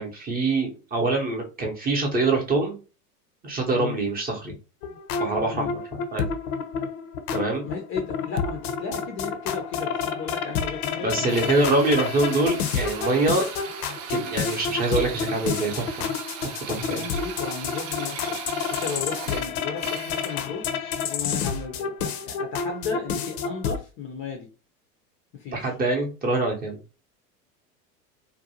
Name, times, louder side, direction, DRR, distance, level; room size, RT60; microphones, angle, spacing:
voice 1, 0.0-2.8 3.4-4.5 5.2-6.3 7.3-7.6 11.0-13.5 14.1-16.1 16.7-17.0 25.5-26.8, right 2 dB, 20° right, 1 dB, 0.7 m, -25 dB
sound 1, 4.8-23.8, left 6 dB, 65° left, 0.6 m, -30 dB
voice 2, 7.6-11.6 16.7-20.7 21.0-24.5 25.3-25.7, left 5 dB, 25° left, 3 dB, 0.5 m, -34 dB
Drill, 11.3-20.5, right 8 dB, 55° right, 0.6 m, -38 dB
2.6 x 2.1 x 2.8 m, 0.33 s
hypercardioid pair, 100°, 48 cm